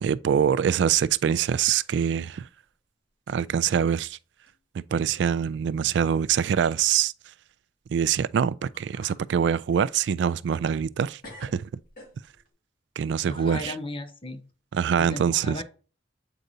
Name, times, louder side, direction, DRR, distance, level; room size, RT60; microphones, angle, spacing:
voice 1, 0.0-2.5 3.3-4.2 4.7-7.1 7.9-11.7 13.0-13.7 14.7-15.6, right 8 dB, 75° right, 0.3 m, -24 dB
sound 1, 1.1-1.5 1.7-2.2 2.7-2.8 3.6-3.7 4.5-4.6 5.0-5.4 5.7-5.8 8.3-8.4 8.7-9.2 9.7-11.0 11.2-12.5, left 1 dB, 50° left, 2.1 m, -50 dB
voice 2, 13.3-14.4 15.0-15.6, left 2 dB, 30° left, 0.8 m, -36 dB
7.8 x 4.9 x 2.7 m
head